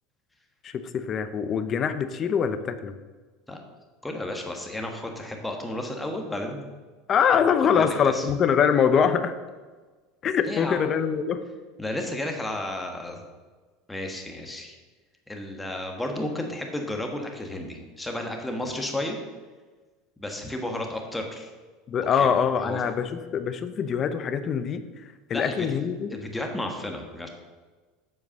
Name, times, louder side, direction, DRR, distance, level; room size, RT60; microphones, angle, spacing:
voice 1, 0.6-3.0 7.1-9.3 10.2-11.4 21.9-24.8 25.3-26.2, left 7 dB, 35° left, 11 dB, 0.7 m, -24 dB
voice 2, 4.0-6.7 7.7-8.2 10.5-10.8 11.8-13.2 13.9-14.8 15.3-19.2 20.2-21.5 22.1-22.3 22.6-22.8 25.3-25.7 26.1-27.3, left 1 dB, 10° left, 3 dB, 1.4 m, -32 dB
7.7 x 4.6 x 6.9 m, 1.3 s
supercardioid pair, 115°, 0 cm